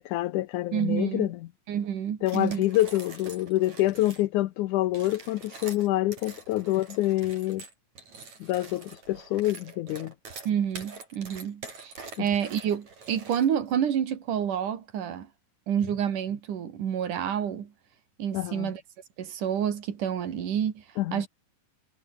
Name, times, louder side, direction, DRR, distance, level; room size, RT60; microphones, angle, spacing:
voice 1, 0.0-1.4 2.2-7.6 8.4-10.1 12.2-12.3 18.3-18.7 21.0-21.2, left 16 dB, 75° left, 2.2 m, -27 dB
voice 2, 0.7-1.3 1.7-2.6 10.5-11.9 12.2-15.3 15.7-17.7 18.2-18.8 19.2-20.8 21.1-21.3, right 9 dB, 75° right, 3.8 m, -28 dB
sound 1, 2.2-4.3 4.8-13.7, right 4 dB, 60° right, 7.0 m, -45 dB
omnidirectional pair, 3.7 m